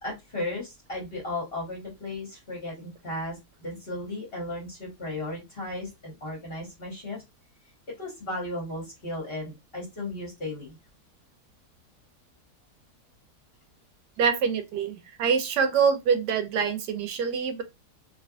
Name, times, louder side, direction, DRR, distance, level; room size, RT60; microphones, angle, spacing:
voice 1, 0.0-7.2 7.9-10.8, left 1 dB, 40° left, 1.1 m, -35 dB
voice 2, 14.2-17.6, right 6 dB, 90° right, 1.3 m, -25 dB
3.3 x 2.8 x 2.3 m
omnidirectional pair, 1.7 m